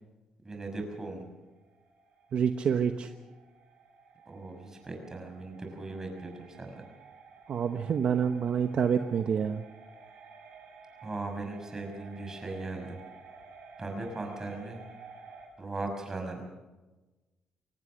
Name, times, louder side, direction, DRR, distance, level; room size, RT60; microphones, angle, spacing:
voice 1, 0.4-1.3 4.3-6.8 11.0-13.0 13.8-14.8 15.6-16.4, right 2 dB, 20° right, 3 dB, 6.0 m, -38 dB
sound 1, 0.8-15.5, right 4 dB, 85° right, 7.8 m, -53 dB
voice 2, 2.3-3.1 7.5-9.6, right 7 dB, 55° right, 7 dB, 1.0 m, -27 dB
24.0 x 18.5 x 6.4 m, 1.2 s
cardioid pair, 120°, 2 cm